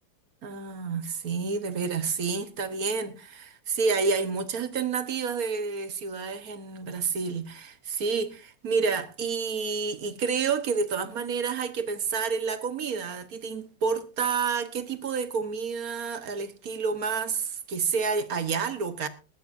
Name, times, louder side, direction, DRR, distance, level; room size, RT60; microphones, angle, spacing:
voice 1, 0.4-19.1, right 5 dB, 50° right, 1.5 m, -29 dB
19.5 x 14.0 x 2.6 m
omnidirectional pair, 2.1 m